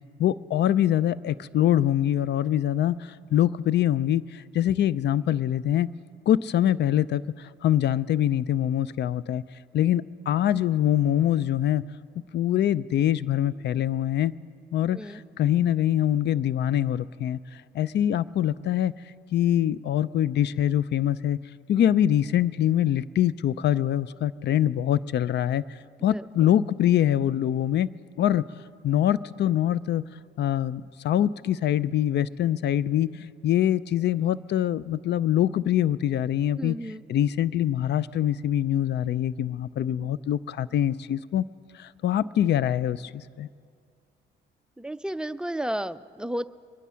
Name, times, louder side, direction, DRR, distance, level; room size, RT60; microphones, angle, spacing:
voice 1, 0.2-5.9 6.3-9.4 9.7-11.8 12.3-14.4 14.7-18.9 19.3-21.4 21.7-27.9 28.2-28.5 28.8-30.1 30.4-36.8 37.1-41.4 41.7-43.5, left 11 dB, 60° left, 19 dB, 0.5 m, -24 dB
voice 2, 36.5-37.0 44.8-46.5, right 1 dB, 5° right, 12 dB, 0.4 m, -32 dB
23.0 x 11.0 x 5.7 m, 2.2 s
cardioid pair, 90°, 20 cm